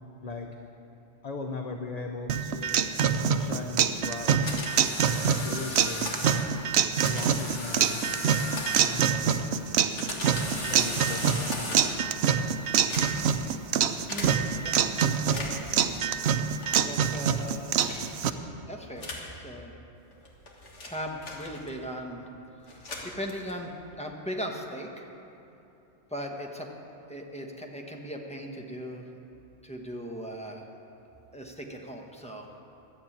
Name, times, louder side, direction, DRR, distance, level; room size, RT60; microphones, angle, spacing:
voice 1, 1.2-4.6 5.1-6.7 7.0-8.2 8.7-9.9 10.6-11.7, left 3 dB, 40° left, 3 dB, 0.7 m, -39 dB
sound 1, 2.3-18.3, right 8 dB, 70° right, 0.8 m, -25 dB
sound 2, 4.3-6.5 7.1-9.2 9.7-12.1 12.7-13.4 14.1-14.3 15.2-15.7 16.6-17.0 17.8-18.2 19.0-19.3 20.1-21.9 22.6-23.7, left 2 dB, 90° left, 2.0 m, -37 dB
voice 2, 14.1-15.6 16.9-17.9 18.7-19.1 19.4-19.7 20.9-22.3 23.0-23.7 24.0-25.1 26.1-26.7 27.1-29.0 29.6-30.6 31.3-32.6, equal, 5° left, 1 dB, 1.1 m, -38 dB
12.0 x 8.0 x 8.6 m, 2.9 s
omnidirectional pair, 1.2 m